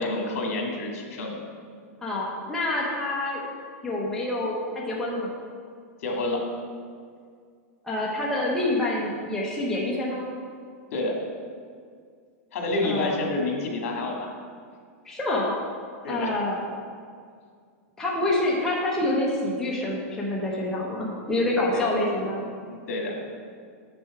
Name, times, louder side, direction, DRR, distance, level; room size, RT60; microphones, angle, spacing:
voice 1, 0.0-1.4 6.0-6.5 10.9-11.2 12.5-14.3 16.0-16.3 21.7-21.9 22.4-23.2, left 2 dB, 65° left, 0 dB, 1.9 m, -29 dB
voice 2, 2.0-3.4 3.8-5.3 7.8-10.3 12.8-13.2 15.0-15.5 16.1-16.6 18.0-22.4, left 1 dB, 5° left, -5 dB, 0.9 m, -27 dB
7.0 x 6.1 x 4.8 m, 2.1 s
supercardioid pair, 155°, 8 cm